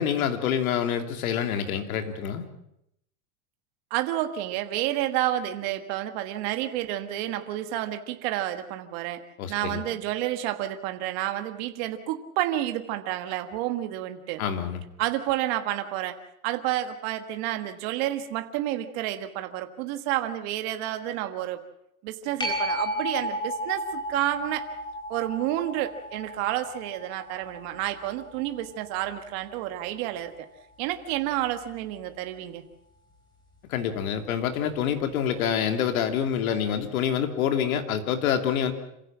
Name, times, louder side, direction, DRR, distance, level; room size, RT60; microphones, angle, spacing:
voice 1, 0.0-2.5 9.4-9.8 14.4-14.8 33.7-38.7, left 8 dB, 75° left, 7 dB, 3.0 m, -27 dB
voice 2, 3.9-9.2 9.5-14.4 15.0-16.2 16.4-21.6 22.0-24.6 25.1-30.5 30.8-32.6, right 13 dB, 45° right, 7 dB, 1.6 m, -30 dB
sound 1, 22.4-29.6 35.1-35.2, equal, 10° left, 4.8 m, -34 dB
27.0 x 16.0 x 7.4 m, 0.80 s
supercardioid pair, 165°, 42 cm